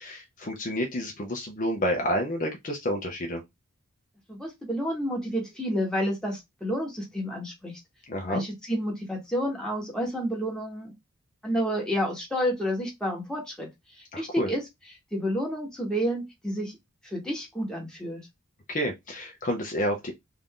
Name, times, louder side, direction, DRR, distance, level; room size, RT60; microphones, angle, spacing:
voice 1, 0.0-3.4 8.1-8.4 14.1-14.5 18.7-20.1, equal, 35° left, 0.6 m, -29 dB
voice 2, 4.3-7.7 8.3-10.9 11.4-13.7 14.0-14.6 15.1-16.7 17.0-18.2, equal, 5° left, 1.1 m, -30 dB
3.3 x 2.6 x 3.6 m
head